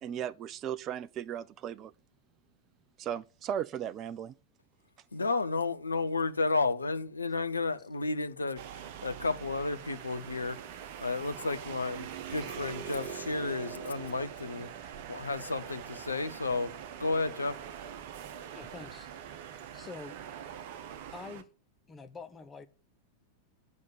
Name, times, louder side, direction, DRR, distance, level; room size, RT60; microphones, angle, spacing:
voice 1, 0.0-1.9 3.0-4.3, right 9 dB, 30° right, 0.5 m, -36 dB
voice 2, 5.1-10.6 11.0-14.7 15.1-16.7 17.0-17.6, left 3 dB, 80° left, 0.9 m, -32 dB
sound 1, 8.6-21.4, right 9 dB, 50° right, 1.2 m, -43 dB
voice 3, 18.5-19.4 19.7-20.2 21.1-21.5 21.9-22.7, left 4 dB, 20° left, 0.9 m, -46 dB
9.7 x 6.4 x 8.7 m
figure-of-eight pair, 90°, 0 cm